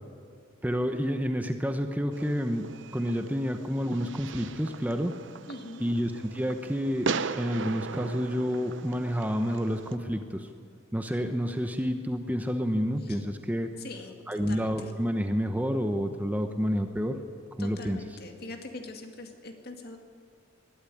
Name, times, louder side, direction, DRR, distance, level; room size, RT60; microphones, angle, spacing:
voice 1, 0.6-2.7 2.9-5.1 5.8-7.1 7.4-10.5 10.9-13.7 14.3-17.2 17.6-18.0, equal, 10° right, 6 dB, 0.9 m, -29 dB
Fireworks, 2.1-10.0, right 4 dB, 70° right, 0.8 m, -38 dB
voice 2, 5.5-5.8 13.1-13.2 13.8-14.1 14.5-14.9 17.6-20.0, left 2 dB, 50° left, 4 dB, 2.3 m, -42 dB
21.5 x 12.0 x 10.0 m, 2.3 s
head